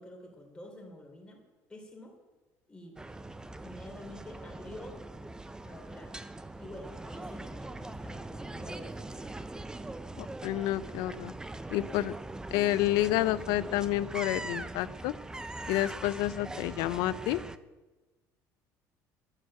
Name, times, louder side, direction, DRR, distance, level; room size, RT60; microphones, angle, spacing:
voice 1, 0.0-1.4 1.7-2.2 2.7-3.0 3.6-5.0 5.6-6.2 6.5-9.4, left 1 dB, 15° left, 1 dB, 4.0 m, -48 dB
sound 1, 3.0-17.6, right 2 dB, 10° right, 0.6 m, -41 dB
voice 2, 10.2-11.3 11.7-12.1 12.5-15.1 15.7-17.4, left 15 dB, 80° left, 16 dB, 0.6 m, -29 dB
11.0 x 9.9 x 7.7 m, 1.2 s
cardioid pair, 110°, 7 cm